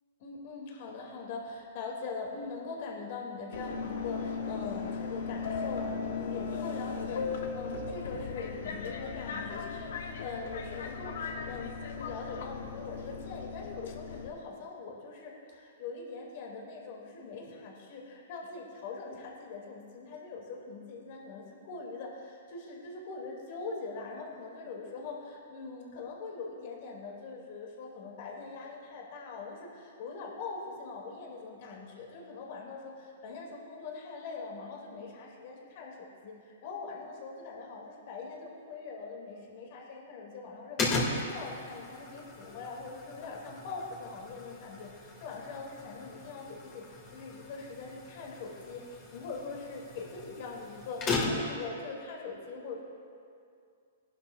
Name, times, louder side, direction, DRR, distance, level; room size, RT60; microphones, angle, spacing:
voice 1, 0.2-52.8, left 4 dB, 55° left, -2 dB, 2.4 m, -42 dB
Subway metro underground, 3.5-14.3, left 5 dB, 70° left, 1.0 m, -37 dB
sound 1, 40.8-51.7, left 3 dB, 25° left, 2.2 m, -37 dB
19.0 x 11.5 x 2.4 m, 2.3 s
hypercardioid pair, 140°, 0 cm